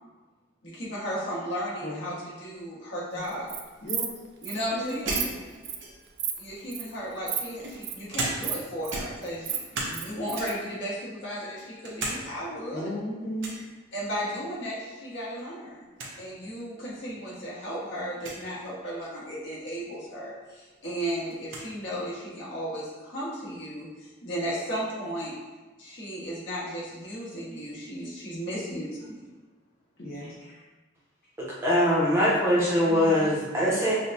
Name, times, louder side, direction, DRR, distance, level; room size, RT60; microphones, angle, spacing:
voice 1, 0.6-3.5 4.4-5.2 6.4-12.9 13.9-15.9 16.2-25.3 25.8-29.3, equal, 70° left, -7 dB, 1.4 m, -35 dB
voice 2, 1.8-2.1 3.8-4.1 4.7-5.3 12.7-13.6 30.0-30.3 32.9-33.2, left 1 dB, 50° left, -6 dB, 0.6 m, -35 dB
Insect, 3.3-3.6 3.9-4.1 4.4-4.6 4.9-5.2 5.6-5.8 6.2-6.4 6.7-6.9 7.3-7.4 7.7-7.9 8.4-9.0 9.3-10.5, right 10 dB, 60° right, 0.4 m, -31 dB
sound 1, 5.1-6.2 7.0-8.6 8.9-10.0 10.3-10.7 11.2-12.2 12.5-12.6 13.4-13.7 15.1-15.4 15.7-15.8 16.0-16.2 17.0-17.1 18.1-18.4 20.1-20.2 20.5-21.7, right 2 dB, 75° right, 0.8 m, -35 dB
voice 3, 31.6-33.9, equal, 15° right, -7 dB, 0.7 m, -22 dB
6.1 x 2.3 x 2.7 m, 1.3 s
head